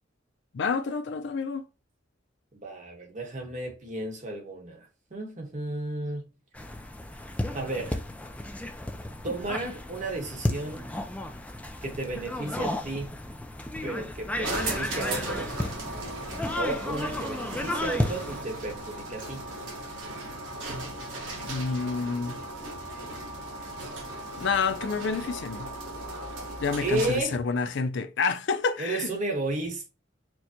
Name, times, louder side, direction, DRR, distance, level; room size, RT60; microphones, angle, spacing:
voice 1, 0.5-1.6 21.4-22.4 24.3-25.7 26.6-29.1, left 5 dB, 65° left, 0.5 m, -28 dB
voice 2, 2.5-6.3 7.5-8.0 9.2-10.8 11.8-13.2 13.8-15.6 16.6-19.5 26.8-27.4 28.8-29.9, right 2 dB, 40° right, 1.0 m, -33 dB
sound 1, 6.5-18.4, left 1 dB, 5° left, 0.4 m, -33 dB
sound 2, 14.4-27.4, right 2 dB, 85° right, 1.3 m, -37 dB
4.5 x 2.1 x 2.7 m
head